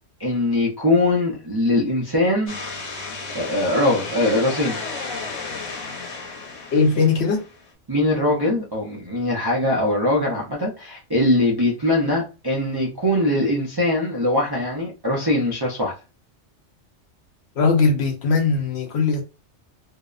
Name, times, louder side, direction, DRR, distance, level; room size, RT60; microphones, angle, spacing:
voice 1, 0.2-2.6 3.3-4.8 7.9-15.9, left 1 dB, 35° right, 0.4 m, -21 dB
sound 1, 2.5-7.6, left 4 dB, 85° left, 1.1 m, -33 dB
voice 2, 6.7-7.4 17.6-19.2, left 4 dB, 65° left, 0.8 m, -19 dB
2.7 x 2.0 x 2.3 m
omnidirectional pair, 1.3 m